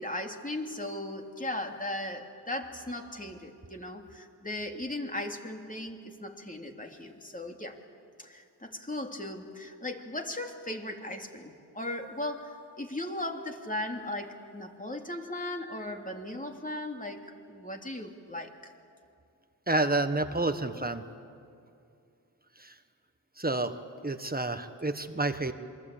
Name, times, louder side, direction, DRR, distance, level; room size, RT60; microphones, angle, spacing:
voice 1, 0.0-7.8 8.2-18.7, left 1 dB, 20° left, 3 dB, 3.0 m, -37 dB
voice 2, 19.7-21.0 22.6-22.7 23.4-23.7 24.0-25.5, right 2 dB, 20° right, 8 dB, 1.4 m, -29 dB
27.5 x 23.5 x 8.6 m, 2.4 s
cardioid pair, 60°, 40 cm